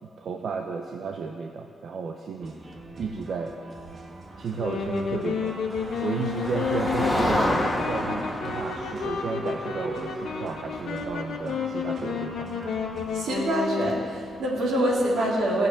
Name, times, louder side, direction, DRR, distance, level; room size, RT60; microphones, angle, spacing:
voice 1, 0.2-2.6 3.0-3.5 4.4-5.6 6.0-7.5 7.9-12.5, right 5 dB, 65° right, 3 dB, 0.9 m, -33 dB
sound 1, 2.4-13.3, right 2 dB, 45° right, 1.6 m, -44 dB
Wind instrument woodwind instrument, 4.5-14.2, left 5 dB, 80° left, 1.5 m, -31 dB
Motor vehicle (road), 5.2-12.9, equal, ahead, 1.8 m, -31 dB
voice 2, 13.1-15.7, right 1 dB, 85° right, -3 dB, 3.5 m, -25 dB
16.0 x 7.7 x 9.1 m, 2.3 s
cardioid pair, 115°, 0 cm